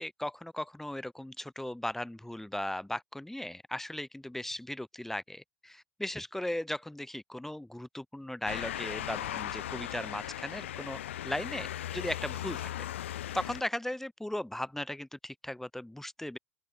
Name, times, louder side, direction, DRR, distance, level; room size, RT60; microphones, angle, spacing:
voice 1, 0.0-11.7 11.9-12.7 13.3-16.4, left 1 dB, 5° left, 5.6 m, -37 dB
Motor vehicle (road) / Siren, 8.5-13.6, left 12 dB, 70° left, 2.9 m, -38 dB
open air
figure-of-eight pair, 70°, 7 cm